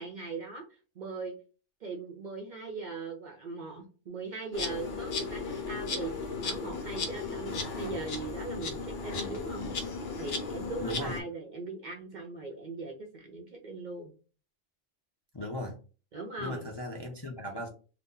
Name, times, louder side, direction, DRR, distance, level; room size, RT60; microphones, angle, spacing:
voice 1, 0.0-1.3 1.8-9.7 10.2-14.1 16.1-16.6, right 3 dB, 55° right, 1 dB, 0.5 m, -40 dB
Insect, 4.5-11.2, left 4 dB, 60° left, 0.9 m, -35 dB
voice 2, 10.8-11.2 15.3-15.8 16.4-17.7, left 1 dB, 35° left, -1 dB, 0.4 m, -37 dB
2.7 x 2.2 x 3.7 m, 0.35 s
omnidirectional pair, 1.2 m